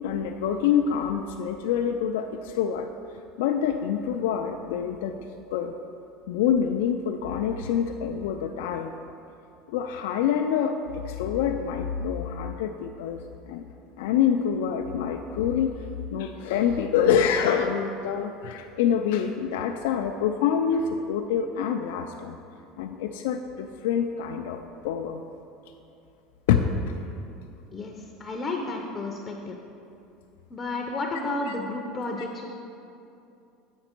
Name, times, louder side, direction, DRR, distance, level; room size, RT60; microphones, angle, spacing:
voice 1, 0.0-2.9 3.4-5.2 5.5-5.7 6.3-8.9 9.7-13.2 13.5-13.6 14.0-15.7 16.1-22.4 22.8-24.6 24.8-25.2 26.5-26.6 31.5-31.6, left 8 dB, 85° left, 4 dB, 0.3 m, -26 dB
voice 2, 27.7-29.6 30.5-32.5, left 2 dB, 20° left, 1 dB, 0.5 m, -32 dB
7.9 x 5.1 x 4.4 m, 2.7 s
supercardioid pair, 145°, 0 cm